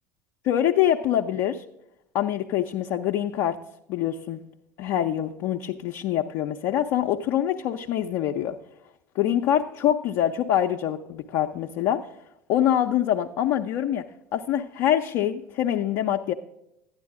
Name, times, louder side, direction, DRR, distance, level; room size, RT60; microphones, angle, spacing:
voice 1, 0.4-1.6 2.1-3.6 3.9-4.4 4.8-8.6 9.2-12.1 12.5-14.0 14.3-16.3, left 11 dB, 50° left, 3 dB, 0.6 m, -25 dB
11.5 x 9.6 x 3.6 m, 0.82 s
figure-of-eight pair, 70°, 8 cm